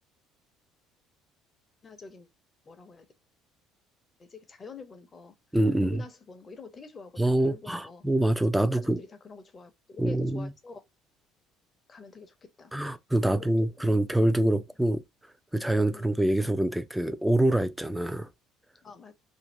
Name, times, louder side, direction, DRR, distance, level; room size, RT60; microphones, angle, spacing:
voice 1, 1.8-2.3 2.6-3.1 4.2-5.4 5.8-8.0 8.5-10.8 11.9-12.7 13.3-13.9 14.5-14.6 15.9-16.1 18.8-19.1, left 4 dB, 30° left, 0.7 m, -46 dB
voice 2, 5.5-6.0 7.2-9.0 10.0-10.5 12.7-15.0 15.5-18.3, right 1 dB, 5° right, 0.4 m, -25 dB
2.6 x 2.6 x 3.1 m
figure-of-eight pair, 55°, 0 cm